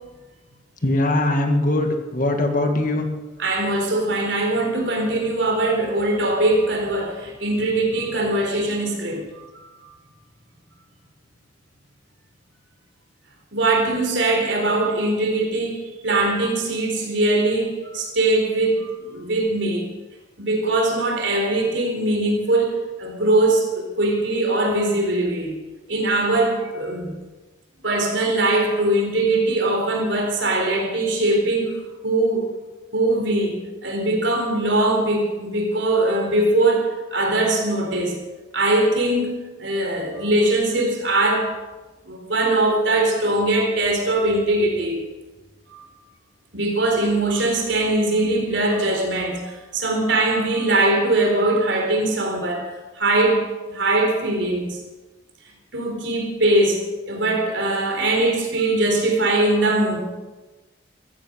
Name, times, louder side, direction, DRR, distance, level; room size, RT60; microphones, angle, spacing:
voice 1, 0.8-3.1, left 1 dB, 45° left, 4 dB, 1.9 m, -21 dB
voice 2, 3.4-9.9 13.5-19.9 20.4-25.6 25.9-27.1 27.8-31.7 32.0-32.4 32.9-38.2 38.5-41.5 42.0-45.0 45.7-45.9 46.5-52.7 53.0-54.8 55.7-60.0, right 2 dB, 70° right, 2 dB, 4.2 m, -21 dB
15.0 x 14.5 x 6.4 m, 1.2 s
head